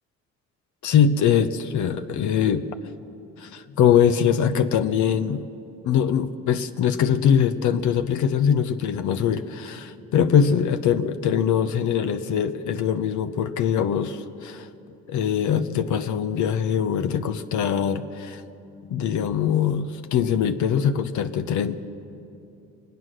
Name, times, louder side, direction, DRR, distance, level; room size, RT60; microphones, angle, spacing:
voice 1, 0.8-2.7 3.4-5.5 5.8-14.7 15.1-18.4 18.9-21.8, left 8 dB, 75° left, 9 dB, 0.8 m, -22 dB
24.5 x 9.3 x 6.4 m, 2.8 s
cardioid pair, 90°, 30 cm